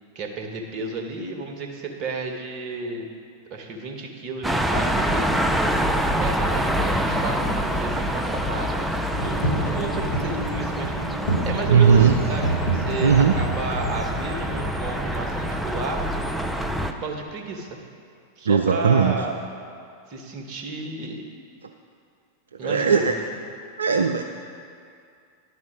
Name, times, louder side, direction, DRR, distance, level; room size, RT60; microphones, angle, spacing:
voice 1, 0.1-3.1 3.5-5.7 6.2-10.9 11.4-16.0 17.0-17.8 18.4-19.4 20.1-21.2 22.6-23.4, right 3 dB, 40° right, 3 dB, 1.1 m, -32 dB
sound 1, 4.4-16.9, equal, 5° right, 0.4 m, -26 dB
sound 2, 9.1-16.6, right 2 dB, 65° left, 1.8 m, -29 dB
voice 2, 11.7-12.1 13.0-13.4 18.5-19.1 22.6-23.1 23.8-24.2, right 6 dB, 70° right, 4 dB, 0.3 m, -18 dB
11.0 x 4.2 x 6.1 m, 2.3 s
figure-of-eight pair, 90°, 0 cm